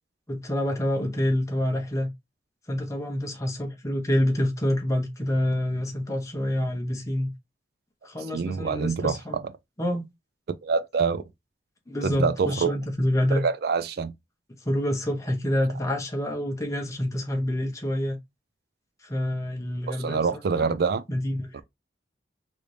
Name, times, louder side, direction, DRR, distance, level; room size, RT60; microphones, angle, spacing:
voice 1, 0.3-2.1 2.7-7.3 8.0-9.4 9.8-10.0 11.9-13.4 14.6-18.2 19.0-20.7 21.1-21.6, left 1 dB, 15° left, 0.8 m, -27 dB
voice 2, 8.3-9.4 10.6-11.2 12.0-12.7 13.3-14.1 19.9-21.0 21.5-21.6, right 5 dB, 55° right, 0.4 m, -26 dB
3.2 x 2.6 x 3.1 m
head